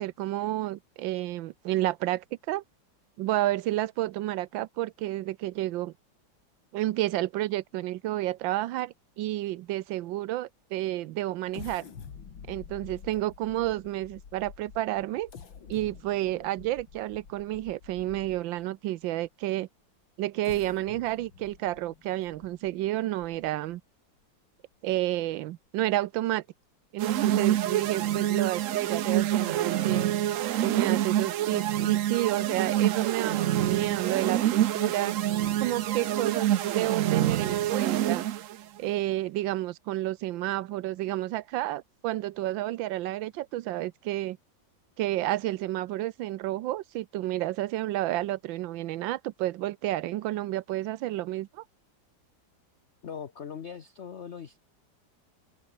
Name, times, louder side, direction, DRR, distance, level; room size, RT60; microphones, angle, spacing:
voice 1, 0.0-2.6 3.2-5.9 6.7-11.8 12.5-15.3 15.7-19.7 20.2-23.8 24.8-26.4 26.9-30.1 30.6-35.2 35.6-38.3 38.8-44.4 45.0-51.6, right 15 dB, 85° right, 1.4 m, -30 dB
sound 1, 11.5-18.6 19.2-19.3 20.2-23.7 24.2-24.3 24.7-25.0, left 6 dB, 80° left, 2.9 m, -48 dB
sound 2, 27.0-38.6, right 12 dB, 70° right, 0.7 m, -26 dB
voice 2, 53.0-54.6, left 7 dB, 45° left, 1.0 m, -40 dB
open air
omnidirectional pair, 2.1 m